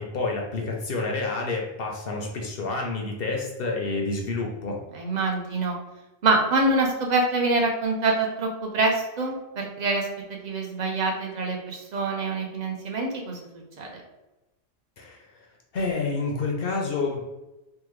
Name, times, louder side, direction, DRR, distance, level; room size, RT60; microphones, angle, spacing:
voice 1, 0.0-4.8 15.0-15.5 15.7-17.2, left 3 dB, 65° left, 0 dB, 0.7 m, -29 dB
voice 2, 4.9-5.8 6.2-14.0, right 3 dB, 45° right, 1 dB, 0.7 m, -25 dB
3.5 x 2.1 x 3.0 m, 1.0 s
omnidirectional pair, 1.1 m